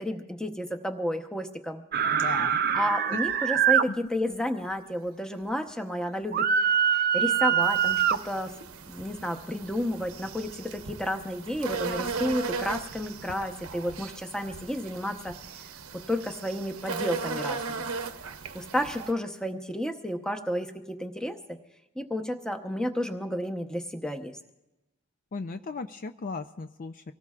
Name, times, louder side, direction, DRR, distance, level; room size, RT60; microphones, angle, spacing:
voice 1, 0.0-1.8 2.7-6.5 7.1-8.5 8.9-15.3 16.1-17.8 18.5-21.4 22.0-24.4, equal, 5° left, 5 dB, 0.9 m, -31 dB
sound 1, 1.9-3.8 6.3-8.2, right 8 dB, 45° right, 0.4 m, -24 dB
voice 2, 2.0-2.6 3.1-3.2 3.9-4.0 25.3-27.1, left 3 dB, 40° left, 9 dB, 0.4 m, -36 dB
sound 2, 7.6-19.1, right 4 dB, 80° right, 0.9 m, -37 dB
25.0 x 18.0 x 2.4 m, 0.99 s
head